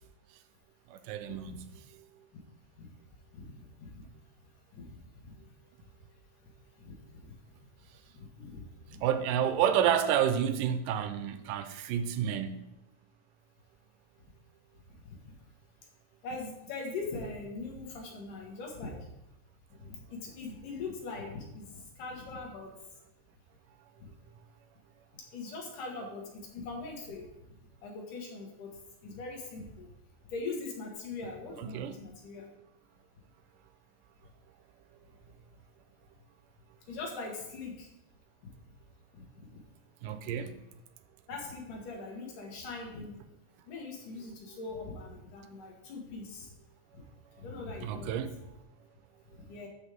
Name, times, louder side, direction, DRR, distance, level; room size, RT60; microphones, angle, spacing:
voice 1, 0.9-1.7 9.0-12.6 31.7-31.9 40.0-40.5 47.8-48.3, right 9 dB, 80° right, 2.1 m, -29 dB
voice 2, 8.1-9.0 15.0-15.4 16.2-19.0 19.8-22.7 24.0-24.1 25.1-27.3 27.8-28.7 29.0-29.9 30.3-32.5 36.9-37.9 39.1-39.4 41.3-43.2 43.7-46.5 46.9-47.0 47.4-48.2 49.4-49.7, left 3 dB, 70° left, 3.1 m, -41 dB
12.0 x 5.3 x 3.5 m
omnidirectional pair, 4.0 m